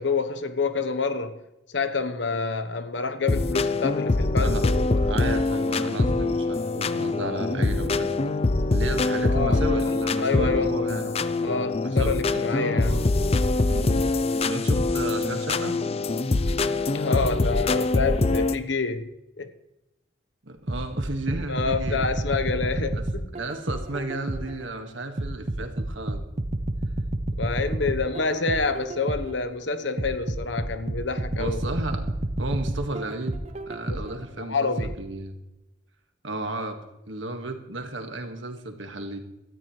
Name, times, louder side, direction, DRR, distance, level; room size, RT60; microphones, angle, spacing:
voice 1, 0.0-1.4 1.7-5.2 9.3-9.6 9.9-10.9 11.4-13.0 16.9-19.1 19.4-19.5 21.5-23.3 27.4-31.6 33.9-34.0 34.5-34.9, left 4 dB, 65° left, 1.1 m, -28 dB
sound 1, 3.3-18.6, left 2 dB, 30° left, 0.5 m, -24 dB
voice 2, 5.1-8.4 8.7-11.2 11.8-13.2 13.7-14.0 14.5-15.8 20.4-22.0 22.9-23.1 23.3-26.3 31.4-32.1 32.4-33.4 33.7-35.4 36.2-36.8 37.1-39.2, right 2 dB, 75° right, 1.8 m, -33 dB
sound 2, 20.7-24.6 25.2-29.4 30.0-34.2 34.8-34.9, right 1 dB, 35° right, 0.7 m, -30 dB
17.5 x 13.5 x 3.3 m
head